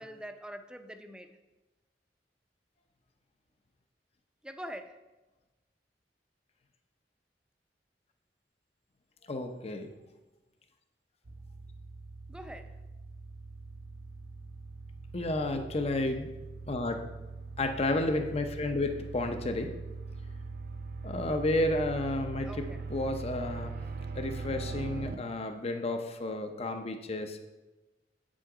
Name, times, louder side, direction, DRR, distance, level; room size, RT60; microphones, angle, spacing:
voice 1, 0.0-1.4 4.4-5.0 12.3-12.8 22.4-22.8, equal, 5° right, 7 dB, 0.5 m, -44 dB
voice 2, 9.3-10.0 15.1-16.4 16.7-17.0 17.6-19.8 21.0-23.8 24.1-27.4, left 2 dB, 35° left, 6 dB, 0.6 m, -32 dB
sound 1, 11.3-25.1, right 4 dB, 55° right, 0.5 m, -41 dB
8.2 x 6.3 x 4.8 m, 1.1 s
head